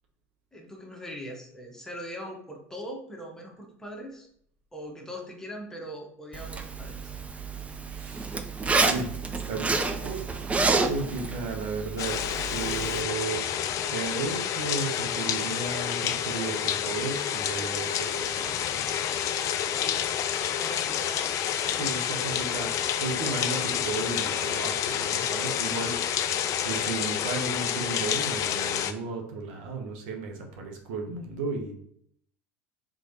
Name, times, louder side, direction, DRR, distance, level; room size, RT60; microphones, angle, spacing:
voice 1, 0.5-4.3 4.7-7.2 19.8-20.1 20.6-21.3 21.7-22.3, equal, 5° left, 0 dB, 1.1 m, -41 dB
Zipper (clothing), 6.3-13.0, right 3 dB, 20° right, 0.4 m, -29 dB
voice 2, 7.9-8.4 8.8-9.7 10.0-13.5 13.9-18.8 21.7-26.0 26.3-26.4 26.6-31.7, right 4 dB, 70° right, 3 dB, 0.7 m, -34 dB
sound 1, 12.0-28.9, left 9 dB, 50° left, 0.4 m, -29 dB
3.7 x 3.1 x 2.8 m, 0.66 s
hypercardioid pair, 75°, 7 cm